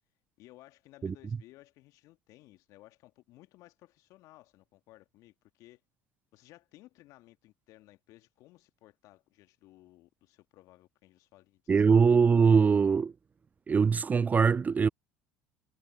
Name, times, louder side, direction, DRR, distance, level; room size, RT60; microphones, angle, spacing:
voice 1, 0.4-5.8 6.3-12.0, left 17 dB, 60° left, 1.9 m, -58 dB
voice 2, 11.7-13.1 13.7-14.9, right 5 dB, 25° right, 0.3 m, -22 dB
hypercardioid pair, 65°, 7 cm